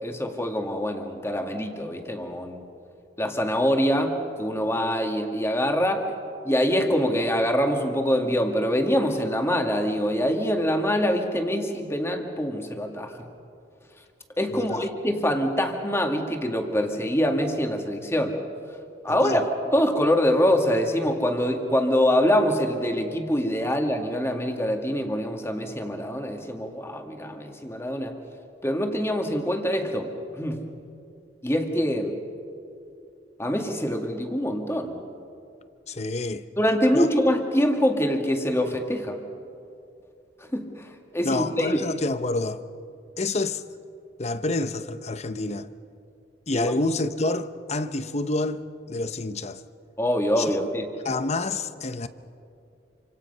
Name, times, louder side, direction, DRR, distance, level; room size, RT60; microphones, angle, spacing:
voice 1, 0.0-2.7 3.2-6.1 6.4-13.2 14.4-18.4 19.0-28.2 28.6-30.6 31.4-32.2 33.4-35.0 36.6-39.2 40.4-41.8 46.5-46.7 50.0-50.9, equal, 15° left, 1.9 m, -24 dB
voice 2, 14.5-14.8 19.1-19.4 35.9-36.4 36.9-37.1 41.2-42.6 43.2-43.6 44.2-45.7 46.5-48.6 48.9-49.6 50.4-50.5 51.0-52.1, left 2 dB, 40° left, 0.8 m, -28 dB
27.5 x 26.0 x 5.6 m
head